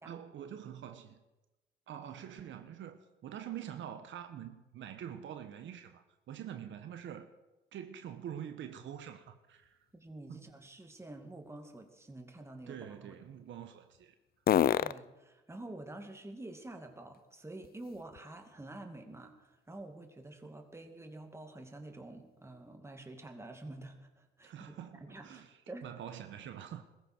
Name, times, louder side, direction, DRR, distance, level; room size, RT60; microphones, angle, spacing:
voice 1, 0.0-1.2 1.9-7.3 7.7-9.8 10.3-10.5 12.7-14.1 24.4-26.8, right 9 dB, 70° right, 1.2 m, -45 dB
sound 1, 9.5-18.5 19.0-22.8, left 10 dB, 50° left, 0.5 m, -39 dB
voice 2, 9.9-13.1 14.8-25.9, right 2 dB, 15° right, 2.3 m, -48 dB
21.5 x 14.0 x 4.5 m
cardioid pair, 90°, 20 cm